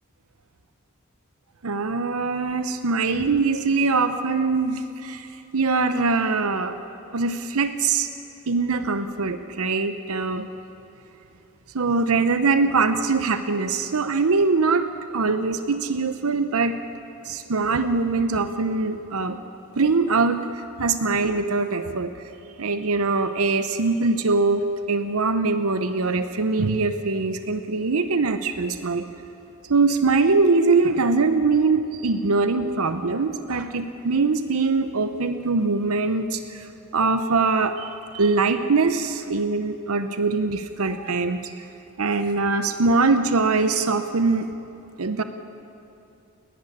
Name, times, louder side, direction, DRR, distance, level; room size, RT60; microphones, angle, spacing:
voice 1, 1.6-6.8 7.1-8.1 8.5-10.5 11.7-16.8 17.2-19.4 19.8-22.1 22.6-29.1 29.7-41.6 42.0-44.5 45.0-45.2, right 4 dB, 75° right, 10 dB, 0.8 m, -22 dB
29.0 x 10.5 x 9.8 m, 2.8 s
head